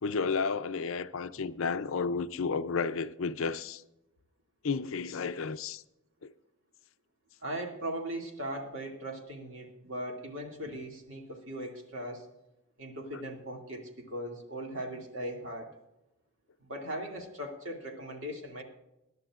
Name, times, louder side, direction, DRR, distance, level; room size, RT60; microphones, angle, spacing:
voice 1, 0.0-3.8 4.6-5.8 6.2-6.3, left 5 dB, 70° left, 0.5 m, -32 dB
voice 2, 7.4-12.3 12.8-15.7 16.6-18.6, right 1 dB, 60° right, 2.3 m, -39 dB
21.5 x 11.0 x 2.4 m
head